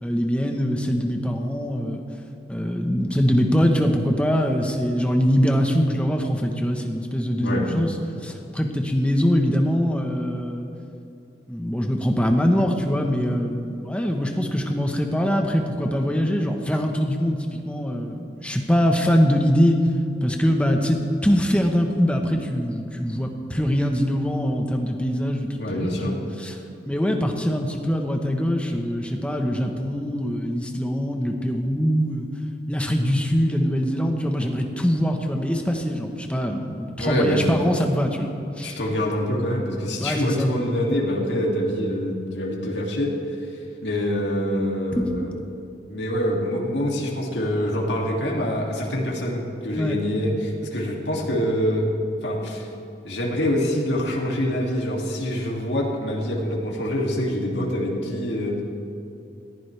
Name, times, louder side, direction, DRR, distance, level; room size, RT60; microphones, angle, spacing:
voice 1, 0.0-2.0 2.5-7.9 8.2-10.7 11.5-17.4 17.6-19.8 20.2-26.6 26.9-32.3 32.7-38.3 38.6-38.8 40.0-40.5 44.9-45.2 49.8-50.0, equal, 5° left, 3 dB, 1.2 m, -23 dB
voice 2, 25.6-26.1 37.0-37.6 38.6-43.1 43.8-45.3 45.9-51.8 52.2-52.7 53.0-58.6, equal, 85° left, -2 dB, 2.6 m, -25 dB
20.5 x 14.5 x 3.5 m, 2.8 s
head